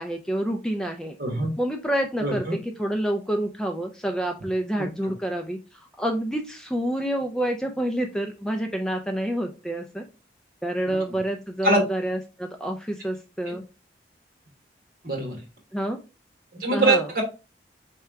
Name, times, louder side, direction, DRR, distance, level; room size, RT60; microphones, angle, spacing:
voice 1, 0.0-1.2 1.6-10.0 10.6-13.6 15.7-16.0 16.7-17.1, right 1 dB, 5° left, 3 dB, 0.4 m, -28 dB
voice 2, 1.2-1.5 2.2-2.6 11.6-11.8 13.5-13.6 15.0-15.4 16.5-17.2, right 2 dB, 50° right, 2 dB, 1.5 m, -23 dB
4.4 x 3.5 x 3.5 m, 0.30 s
head